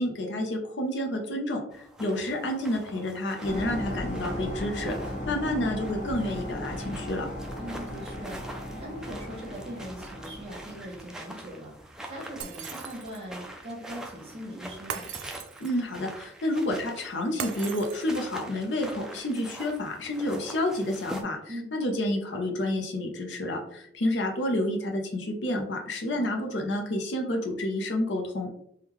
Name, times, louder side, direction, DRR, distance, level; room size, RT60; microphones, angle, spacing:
voice 1, 0.0-5.0 5.3-7.3 15.6-28.5, left 1 dB, 85° left, 3 dB, 0.6 m, -29 dB
sound 1, 1.7-21.2, right 1 dB, 5° right, 0.3 m, -45 dB
sound 2, 3.4-11.0, equal, 45° left, 0.7 m, -36 dB
voice 2, 7.6-8.4 8.8-15.1 21.5-21.7 26.1-26.3, equal, 35° right, -2 dB, 1.0 m, -41 dB
Shatter, 12.4-13.3 14.9-15.9 17.4-18.4, right 7 dB, 85° right, 0.4 m, -39 dB
3.5 x 2.2 x 2.9 m, 0.68 s
head